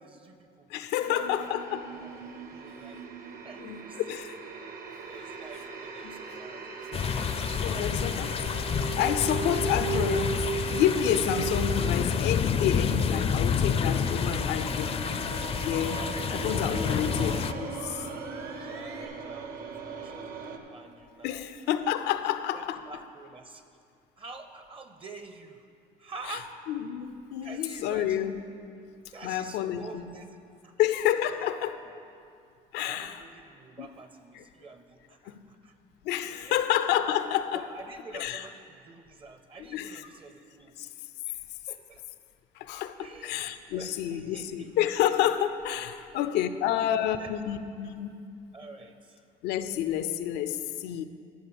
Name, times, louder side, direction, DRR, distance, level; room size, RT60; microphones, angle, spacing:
voice 1, 0.0-0.7 1.0-1.6 1.9-2.2 2.5-3.0 3.4-4.2 5.0-8.3 9.2-9.6 9.9-10.0 16.6-17.0 18.3-21.5 22.5-23.6 24.2-25.7 26.0-26.5 27.4-28.2 29.1-30.9 31.3-31.5 32.8-35.7 36.2-36.7 37.5-41.0 41.3-42.0 43.0-44.7 47.0-47.4 48.5-49.3, right 3 dB, 30° right, 0.6 m, -48 dB
voice 2, 0.7-1.9 3.6-4.4 6.0-6.4 7.6-8.3 9.0-10.4 10.7-15.0 15.6-18.1 21.2-22.9 26.7-28.5 29.2-30.1 30.8-31.9 32.7-33.2 33.8-33.9 34.4-34.5 35.3-35.4 36.0-37.7 38.1-38.4 39.7-40.0 40.8-40.9 42.6-43.0 43.2-48.2 49.4-51.0, left 10 dB, 85° left, 0.5 m, -29 dB
sound 1, 1.0-20.6, right 5 dB, 60° right, 1.0 m, -38 dB
sound 2, 6.9-17.5, left 7 dB, 35° left, 0.4 m, -29 dB
sound 3, 9.1-19.1, right 4 dB, 75° right, 1.2 m, -47 dB
11.5 x 5.5 x 7.0 m
cardioid pair, 110°, 17 cm